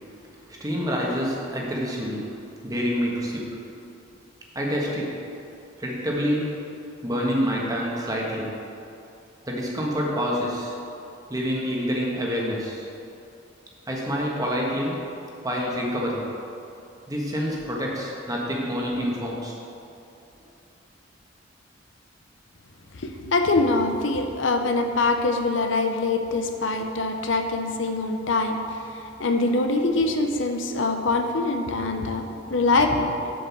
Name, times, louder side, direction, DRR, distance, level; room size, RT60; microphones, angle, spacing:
voice 1, 0.1-3.6 4.5-5.2 5.8-6.6 7.0-8.6 9.4-10.7 11.3-12.8 13.9-15.0 15.4-16.3 17.1-19.5, equal, 20° right, -3 dB, 1.4 m, -27 dB
voice 2, 22.9-33.3, left 3 dB, 85° left, 5 dB, 0.7 m, -24 dB
7.7 x 5.2 x 7.2 m, 2.7 s
head